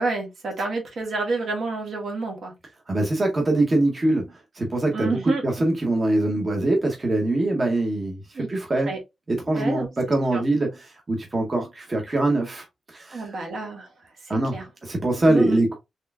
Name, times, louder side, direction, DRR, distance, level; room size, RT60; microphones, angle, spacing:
voice 1, 0.0-2.5 4.9-5.4 8.3-8.5 8.8-9.0 9.5-9.9 10.3-10.4 13.1-13.9 14.5-14.6 15.3-15.6, right 3 dB, 65° right, 1.6 m, -28 dB
voice 2, 2.9-8.9 9.3-13.4 14.3-15.8, right 2 dB, 25° right, 0.8 m, -23 dB
4.2 x 3.4 x 2.3 m
wide cardioid pair, 155°, 0 cm